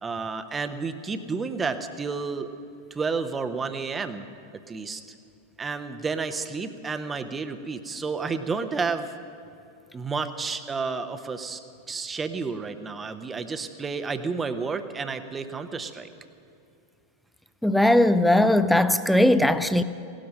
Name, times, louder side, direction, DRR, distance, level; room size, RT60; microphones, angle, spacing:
voice 1, 0.0-2.5 2.9-4.3 4.7-5.0 5.6-9.1 9.9-11.6 11.9-16.1, right 4 dB, 15° right, 10 dB, 0.9 m, -31 dB
voice 2, 17.6-19.8, left 1 dB, ahead, 13 dB, 0.6 m, -19 dB
17.5 x 12.5 x 6.5 m, 2.6 s
figure-of-eight pair, 90°, 0 cm